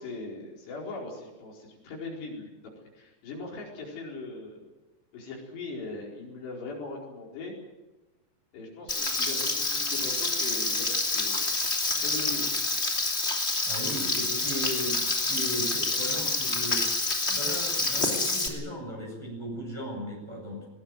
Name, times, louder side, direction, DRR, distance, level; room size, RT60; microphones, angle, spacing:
voice 1, 0.0-2.5 2.9-4.6 5.1-7.5 8.5-12.7, left 3 dB, 70° left, -1 dB, 6.6 m, -40 dB
Frying (food), 8.9-18.5, left 2 dB, 20° left, 2.4 m, -28 dB
voice 2, 13.6-16.8 17.3-20.7, equal, 5° right, -1 dB, 7.5 m, -36 dB
21.5 x 19.5 x 9.1 m, 1.1 s
omnidirectional pair, 5.1 m